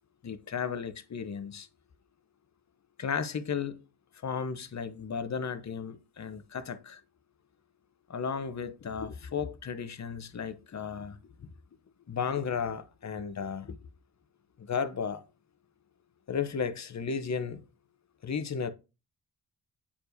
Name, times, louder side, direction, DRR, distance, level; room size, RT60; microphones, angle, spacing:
voice 1, 0.2-1.7 3.0-3.8 4.2-7.0 8.1-11.5 12.1-13.8 14.6-15.2 16.3-17.6 18.2-18.7, left 6 dB, 40° left, 0.9 m, -34 dB
8.6 x 4.6 x 2.7 m
supercardioid pair, 40°, 42 cm